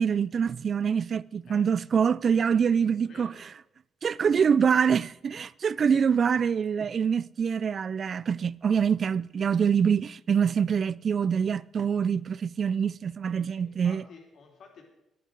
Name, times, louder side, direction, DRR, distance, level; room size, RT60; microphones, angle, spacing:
voice 1, 0.0-3.3 4.0-14.0, right 7 dB, 50° right, 0.3 m, -25 dB
voice 2, 2.8-3.5 13.5-14.8, left 5 dB, 60° left, 3.4 m, -52 dB
10.5 x 10.5 x 6.6 m
cardioid pair, 90°, 0 cm